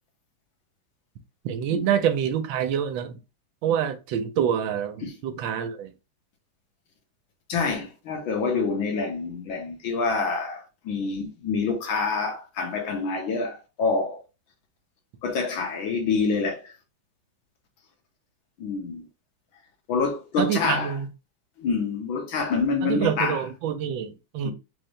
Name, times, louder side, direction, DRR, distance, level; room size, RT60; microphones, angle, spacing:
voice 1, 1.4-3.2 3.6-5.9 20.4-21.1 22.8-24.5, right 9 dB, 80° right, 1.4 m, -26 dB
voice 2, 7.5-14.2 15.2-16.7 18.6-19.1 19.9-21.0 21.6-23.4 24.4-24.5, left 4 dB, 85° left, 1.8 m, -27 dB
4.1 x 2.7 x 3.2 m
omnidirectional pair, 2.1 m